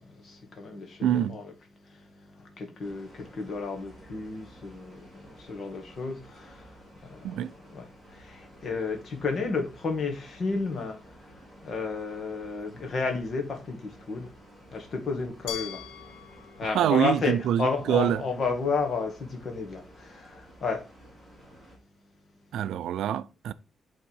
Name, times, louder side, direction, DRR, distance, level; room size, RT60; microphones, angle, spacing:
voice 1, 0.0-21.1, left 4 dB, 40° left, 1.6 m, -33 dB
voice 2, 1.0-1.4 7.2-7.5 16.7-18.2 22.5-23.5, right 10 dB, 85° right, 0.4 m, -25 dB
sound 1, 2.8-21.8, right 1 dB, 5° left, 2.7 m, -53 dB
Glass, 15.5-18.4, left 9 dB, 80° left, 1.1 m, -43 dB
8.7 x 3.6 x 4.6 m
wide cardioid pair, 180°, 0 cm